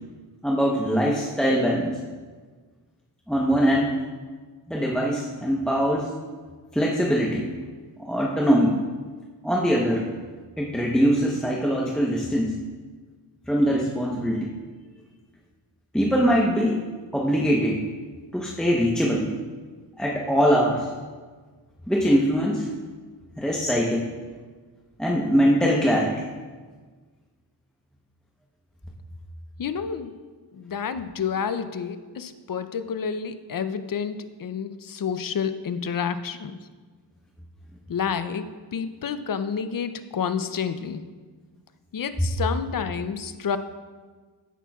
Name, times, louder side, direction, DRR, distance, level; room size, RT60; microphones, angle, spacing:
voice 1, 0.4-1.9 3.3-3.9 4.7-6.1 6.7-7.4 8.0-8.8 9.4-10.0 10.6-12.5 13.5-14.5 15.9-16.8 17.1-17.8 18.3-19.2 20.0-20.9 21.9-22.7 23.4-24.1 25.0-26.3, equal, ahead, -3 dB, 0.9 m, -22 dB
voice 2, 29.6-30.1 30.5-36.6 37.9-41.0 41.9-43.6, left 7 dB, 50° left, 11 dB, 0.6 m, -29 dB
15.0 x 5.8 x 2.4 m, 1.4 s
cardioid pair, 70°, 44 cm